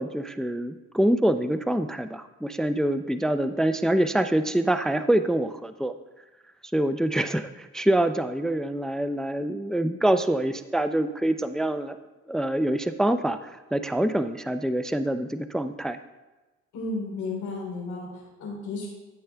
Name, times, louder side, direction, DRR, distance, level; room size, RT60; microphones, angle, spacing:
voice 1, 0.0-5.9 6.7-12.0 12.3-16.0, right 1 dB, ahead, 9 dB, 0.4 m, -25 dB
voice 2, 16.7-18.9, left 3 dB, 80° left, -2 dB, 3.3 m, -33 dB
12.5 x 6.9 x 3.4 m, 1.2 s
cardioid pair, 90°, 30 cm